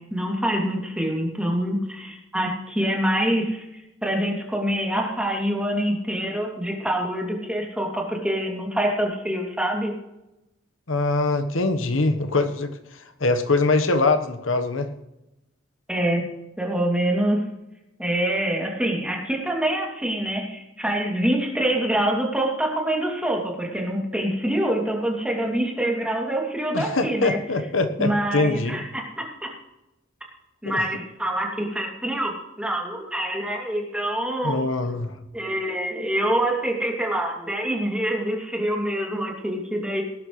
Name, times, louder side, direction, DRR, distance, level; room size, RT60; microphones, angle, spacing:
voice 1, 0.1-3.7 4.0-9.9 15.9-16.2 16.6-17.4 18.0-27.4 28.0-29.5 30.6-34.6 35.3-40.0, right 1 dB, 5° right, -1 dB, 2.7 m, -25 dB
voice 2, 10.9-14.9 26.7-28.8 30.6-30.8 34.4-35.2, left 3 dB, 90° left, 8 dB, 1.2 m, -23 dB
18.5 x 11.5 x 3.2 m, 0.93 s
head